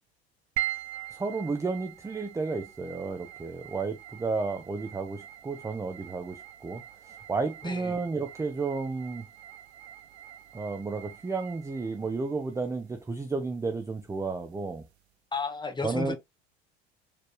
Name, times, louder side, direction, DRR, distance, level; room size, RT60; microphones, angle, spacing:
sound 1, 0.6-15.0, right 14 dB, 85° right, 0.5 m, -43 dB
voice 1, 1.1-9.3 10.5-14.8 15.8-16.2, right 4 dB, 10° right, 0.5 m, -32 dB
voice 2, 7.6-8.0 15.3-16.2, left 4 dB, 15° left, 1.0 m, -33 dB
4.2 x 3.0 x 3.2 m
figure-of-eight pair, 70°, 32 cm